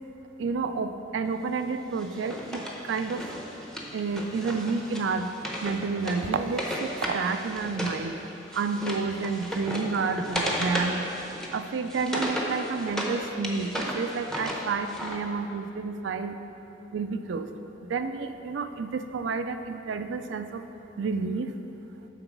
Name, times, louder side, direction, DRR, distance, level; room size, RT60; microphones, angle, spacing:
voice 1, 0.4-3.2 3.9-5.3 5.6-8.2 8.5-11.1 11.5-16.3 16.9-17.5 17.8-20.6 21.0-21.5, right 4 dB, 75° right, 8 dB, 0.4 m, -30 dB
Wood, 2.0-8.0 8.3-13.1 13.4-15.2, equal, 5° left, 0.8 m, -34 dB
9.0 x 4.0 x 5.9 m, 2.9 s
head